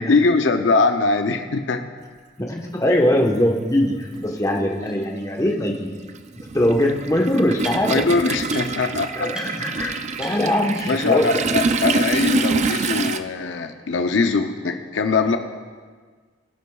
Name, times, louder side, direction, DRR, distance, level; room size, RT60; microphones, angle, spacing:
voice 1, 0.0-1.8 7.9-9.1 10.9-15.4, left 4 dB, 75° left, 6 dB, 0.6 m, -21 dB
voice 2, 2.4-5.9 6.4-8.0 9.1-11.3, left 1 dB, 20° left, -1 dB, 1.0 m, -21 dB
Toilet flush, 2.7-2.8 4.1-4.2 4.6-13.2, right 4 dB, 40° right, 0.4 m, -25 dB
sound 1, 4.1-4.2 4.8-4.9 6.2-6.3 6.6-8.1 8.5-8.9 9.3-9.5 9.8-9.9 10.2-11.2, equal, 5° right, 1.5 m, -40 dB
20.5 x 8.1 x 2.3 m, 1.5 s
head